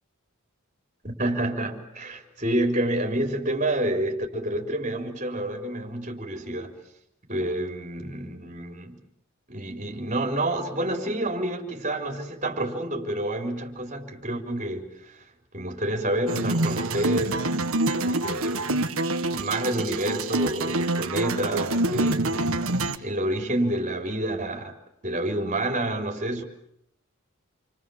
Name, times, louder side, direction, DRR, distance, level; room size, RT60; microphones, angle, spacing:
voice 1, 1.0-6.8 7.3-9.0 9.5-15.1 15.5-17.4 18.0-22.7 23.0-24.7 25.0-26.4, right 1 dB, 35° right, 4.2 m, -29 dB
sound 1, 16.3-23.0, right 2 dB, 65° right, 1.6 m, -26 dB
29.0 x 24.5 x 7.3 m
head